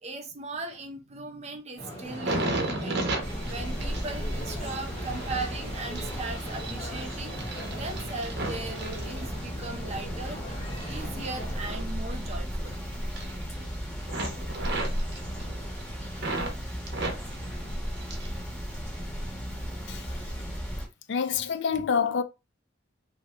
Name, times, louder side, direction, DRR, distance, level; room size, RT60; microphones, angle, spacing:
voice 1, 0.0-3.0 3.5-7.4 7.7-10.4 10.8-12.8, right 3 dB, 35° right, 0.6 m, -38 dB
sound 1, 1.8-11.6, equal, 30° left, 1.7 m, -40 dB
sound 2, 2.0-9.7 10.2-12.8 13.0-13.7 14.0-16.5 16.9-18.4 18.7-19.4 20.0-20.2, right 2 dB, 60° right, 0.9 m, -36 dB
sound 3, 3.2-20.9, equal, 15° left, 1.4 m, -35 dB
voice 2, 21.1-22.2, left 6 dB, 65° left, 0.4 m, -27 dB
2.8 x 2.6 x 3.2 m
head